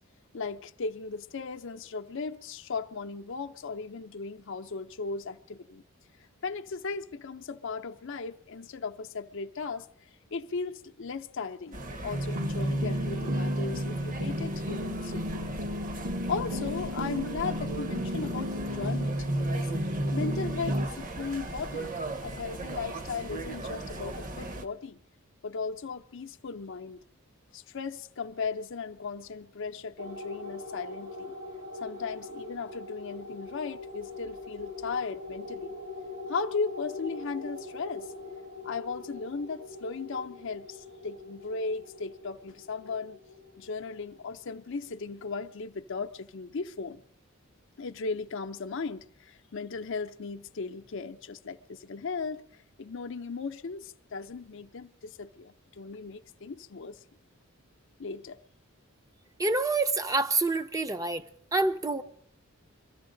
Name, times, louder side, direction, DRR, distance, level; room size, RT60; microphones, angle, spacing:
voice 1, 0.3-5.8 6.4-9.9 10.3-11.8 12.0-15.5 16.3-19.7 20.1-21.9 22.2-25.0 25.4-27.0 27.5-31.3 31.8-35.8 36.3-38.1 38.6-43.2 43.6-47.0 47.8-52.4 52.8-57.0 58.0-58.4, left 4 dB, 60° left, 0.6 m, -36 dB
sound 1, 11.7-24.7, right 2 dB, 40° right, 0.9 m, -39 dB
sound 2, 12.1-20.9, equal, 60° right, 1.0 m, -32 dB
sound 3, 30.0-44.7, left 3 dB, 80° right, 2.3 m, -43 dB
voice 2, 59.4-61.3 61.5-62.0, right 3 dB, 15° right, 0.5 m, -27 dB
23.5 x 14.0 x 3.8 m
head